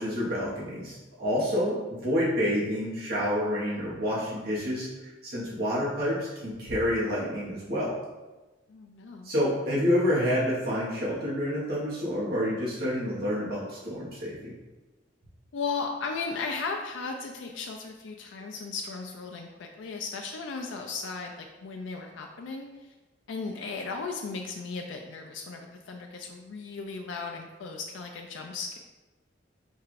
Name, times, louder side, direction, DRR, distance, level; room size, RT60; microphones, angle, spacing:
voice 1, 0.0-7.9 9.2-14.5, equal, 55° right, -7 dB, 1.3 m, -28 dB
voice 2, 8.7-9.3 15.5-22.7 23.3-28.8, left 4 dB, 90° left, 2 dB, 0.4 m, -36 dB
4.4 x 2.5 x 4.7 m, 1.2 s
head